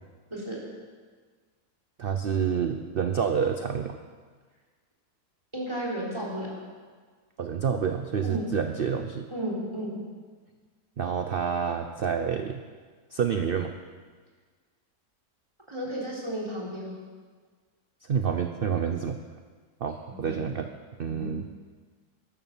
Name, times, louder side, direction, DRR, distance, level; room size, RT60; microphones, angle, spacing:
voice 1, 2.0-4.0 7.4-9.3 11.0-12.6 13.1-13.7 18.0-19.2 19.8-20.7 21.0-21.4, right 7 dB, 55° right, 7 dB, 0.6 m, -28 dB
voice 2, 5.5-6.5 8.2-8.5 9.3-10.0 15.7-17.0 20.2-20.3 21.0-21.3, equal, 15° right, -4 dB, 3.8 m, -33 dB
12.5 x 11.0 x 7.3 m, 1.5 s
omnidirectional pair, 1.7 m